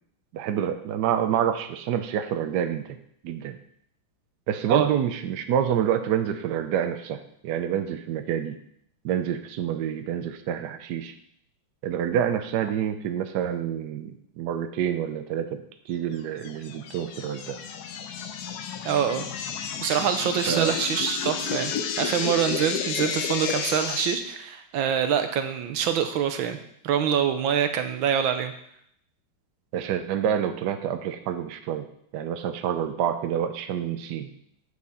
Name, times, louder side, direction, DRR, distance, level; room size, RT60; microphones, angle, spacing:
voice 1, 0.3-3.0 3.2-3.6 4.5-8.6 9.0-11.1 11.8-17.6 20.5-20.7 29.7-31.9 32.1-34.3, right 9 dB, 70° right, 8 dB, 1.2 m, -27 dB
sound 1, 16.4-24.2, left 7 dB, 65° left, 1.1 m, -31 dB
voice 2, 18.8-19.2 19.8-26.6 26.8-28.5, right 8 dB, 85° right, 8 dB, 1.5 m, -25 dB
8.5 x 6.6 x 4.1 m, 0.69 s
omnidirectional pair, 2.1 m